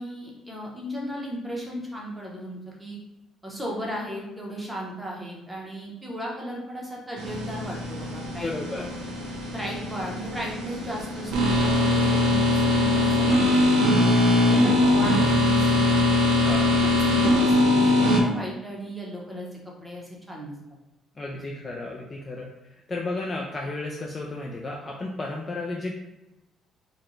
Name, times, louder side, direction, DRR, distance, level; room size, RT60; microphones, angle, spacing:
voice 1, 0.0-3.0 3.4-8.9 9.5-16.0 17.0-20.5, equal, 5° right, -3 dB, 0.8 m, -36 dB
sound 1, 7.2-18.2, left 1 dB, 85° right, 0.9 m, -21 dB
voice 2, 8.4-8.8 16.5-16.8 21.2-22.5 22.9-25.9, left 2 dB, 20° left, -1 dB, 0.4 m, -33 dB
4.8 x 2.2 x 3.1 m, 0.95 s
cardioid pair, 155°, 0 cm